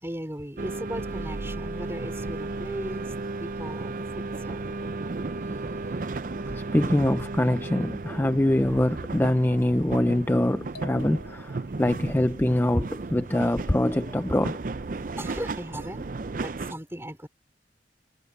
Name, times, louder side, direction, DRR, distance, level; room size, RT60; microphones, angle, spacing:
voice 1, 0.0-4.6 15.2-16.1 16.4-17.3, right 1 dB, 15° right, 3.5 m, -37 dB
sound 1, 0.6-16.7, right 3 dB, 45° right, 0.5 m, -34 dB
voice 2, 6.5-14.6, left 1 dB, 10° left, 0.4 m, -24 dB
sound 2, 10.7-11.9, left 2 dB, 55° left, 1.8 m, -46 dB
head